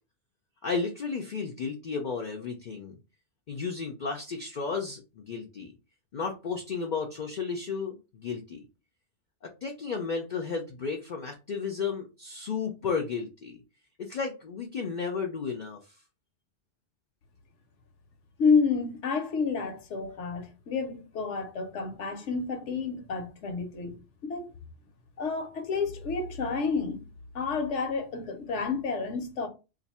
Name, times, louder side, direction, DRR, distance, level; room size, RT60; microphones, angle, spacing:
voice 1, 0.6-3.0 3.5-5.7 6.1-8.7 9.4-13.6 14.0-15.9, left 5 dB, 55° left, 0.5 m, -33 dB
voice 2, 18.4-24.5 25.2-27.0 27.3-29.5, left 5 dB, 75° left, 1.0 m, -29 dB
2.6 x 2.5 x 4.1 m
omnidirectional pair, 1.2 m